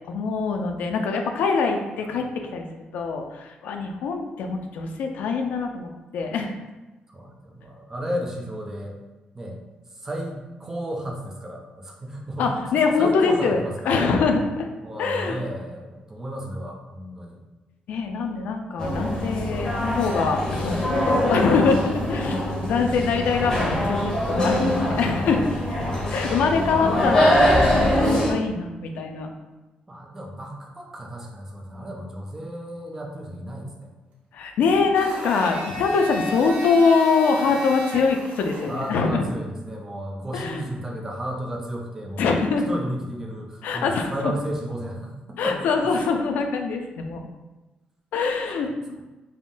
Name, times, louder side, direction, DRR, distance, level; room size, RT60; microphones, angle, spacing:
voice 1, 0.1-2.6 2.9-6.5 12.4-14.7 15.0-15.4 17.9-25.4 25.9-27.4 27.7-29.3 34.3-39.2 40.3-40.6 42.2-42.7 43.6-44.3 45.4-47.3 48.1-49.0, left 4 dB, 75° left, 3 dB, 0.3 m, -24 dB
voice 2, 7.1-9.0 9.3-9.6 10.0-12.6 13.0-14.2 14.8-17.4 25.6-26.9 29.9-33.9 38.7-42.3 42.7-45.9, equal, 15° right, 0 dB, 0.4 m, -33 dB
sound 1, 18.8-28.3, left 1 dB, 30° left, 0.6 m, -23 dB
Domestic sounds home sounds, 35.0-39.0, equal, 80° right, 0.7 m, -34 dB
3.5 x 2.2 x 2.5 m, 1.1 s
cardioid pair, 175°, 3 cm